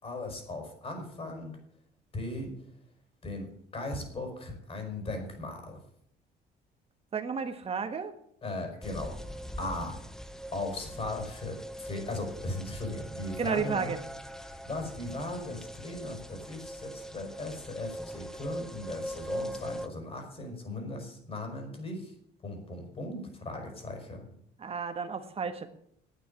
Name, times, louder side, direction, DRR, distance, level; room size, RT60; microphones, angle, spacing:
voice 1, 0.0-1.5 2.1-2.5 3.2-5.8 8.4-9.3 9.6-10.0 10.5-13.9 14.4-22.1 22.4-24.2, left 2 dB, 35° left, 4 dB, 5.0 m, -38 dB
voice 2, 7.1-8.1 13.4-14.0 24.6-25.7, right 5 dB, 35° right, 8 dB, 1.4 m, -32 dB
sound 1, 8.8-19.9, equal, 5° left, 0.8 m, -41 dB
10.0 x 9.1 x 10.0 m, 0.70 s
cardioid pair, 110°, 17 cm